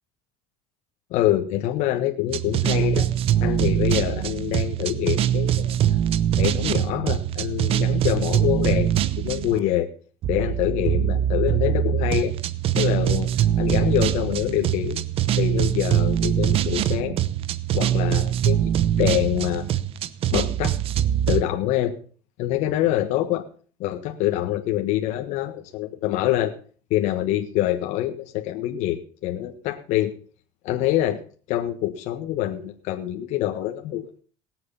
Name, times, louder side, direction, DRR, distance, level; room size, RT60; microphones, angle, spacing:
voice 1, 1.1-3.1 3.4-5.7 6.4-8.9 9.2-9.9 10.3-12.3 12.7-13.3 13.6-15.0 15.4-17.2 17.7-18.7 19.0-19.7 20.3-20.8 21.3-21.9 22.4-23.5 23.8-26.5 26.9-30.1 30.6-31.2 31.5-34.2, left 13 dB, 70° left, 4 dB, 1.4 m, -25 dB
sound 1, 2.3-9.6 10.2-21.4, right 11 dB, 50° right, 0.9 m, -23 dB
19.0 x 7.9 x 5.6 m, 0.41 s
cardioid pair, 115°, 12 cm